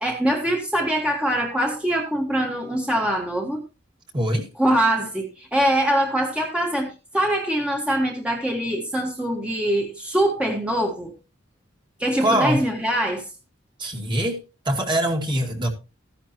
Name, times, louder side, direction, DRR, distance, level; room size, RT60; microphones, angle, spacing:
voice 1, 0.0-3.6 4.6-11.1 12.0-13.2, right 1 dB, 5° right, 0 dB, 1.7 m, -23 dB
voice 2, 4.1-4.5 12.2-12.6 13.8-14.4 14.7-15.7, right 1 dB, 25° right, 3 dB, 2.3 m, -23 dB
14.5 x 11.0 x 2.9 m, 0.30 s
head